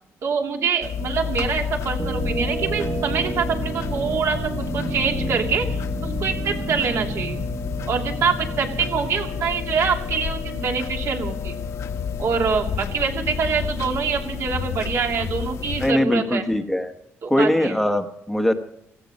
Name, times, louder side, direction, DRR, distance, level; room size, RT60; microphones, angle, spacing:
voice 1, 0.2-5.6 6.0-7.4 7.9-11.6 12.2-16.4 17.2-17.7, right 5 dB, 65° right, 2 dB, 2.7 m, -25 dB
sound 1, 0.8-15.9, left 7 dB, 70° left, 1.4 m, -30 dB
sound 2, 2.0-10.7, right 4 dB, 25° right, 0.9 m, -32 dB
voice 2, 15.8-16.9 17.3-18.5, left 1 dB, 5° left, 6 dB, 1.0 m, -21 dB
16.5 x 15.0 x 5.3 m, 0.72 s
cardioid pair, 140°, 5 cm